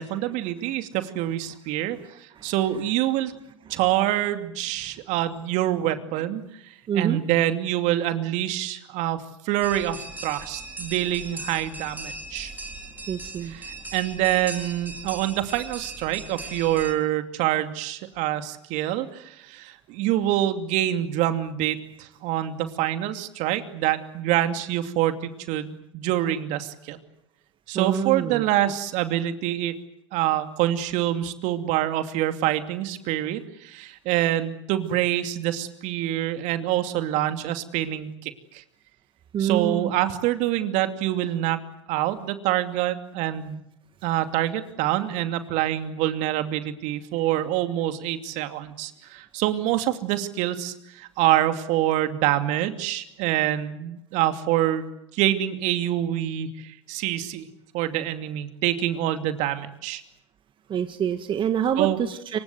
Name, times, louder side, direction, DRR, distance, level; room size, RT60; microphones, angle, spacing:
voice 1, 0.0-3.3 3.7-6.4 6.9-12.5 13.4-27.0 27.7-29.8 30.1-38.6 39.4-41.6 41.9-43.6 44.0-54.9 55.1-57.5 57.7-60.0 61.8-62.0, right 13 dB, 55° right, 8 dB, 2.6 m, -26 dB
voice 2, 6.9-7.2 13.1-13.5 27.7-28.4 39.3-39.9 60.7-62.4, right 8 dB, 35° right, 8 dB, 1.8 m, -26 dB
sound 1, 9.6-16.9, right 2 dB, 10° right, 3.9 m, -39 dB
27.0 x 25.0 x 7.9 m, 0.84 s
hypercardioid pair, 85°, 15 cm